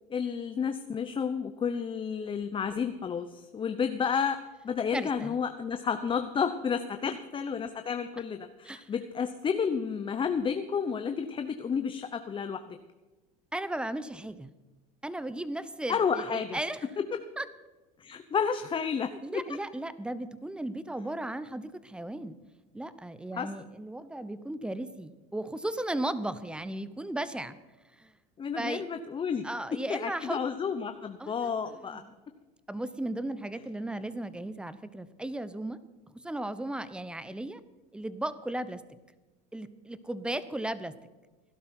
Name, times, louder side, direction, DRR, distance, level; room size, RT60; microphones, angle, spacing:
voice 1, 0.1-4.4 4.6-12.8 15.9-16.6 17.0-17.1 18.0-19.4 23.3-23.5 28.4-32.0, left 6 dB, 25° left, 8 dB, 0.8 m, -31 dB
voice 2, 4.9-5.4 7.0-7.2 8.6-8.9 13.5-14.5 15.0-16.9 17.4-17.5 19.2-22.4 22.7-27.6 28.0-28.1 28.5-28.8 29.4-30.4 31.2-32.1 32.7-35.8 36.1-37.6 37.9-38.8 39.5-40.9, right 1 dB, 5° right, 14 dB, 0.9 m, -36 dB
17.0 x 11.5 x 4.4 m, 1.2 s
supercardioid pair, 100°, 19 cm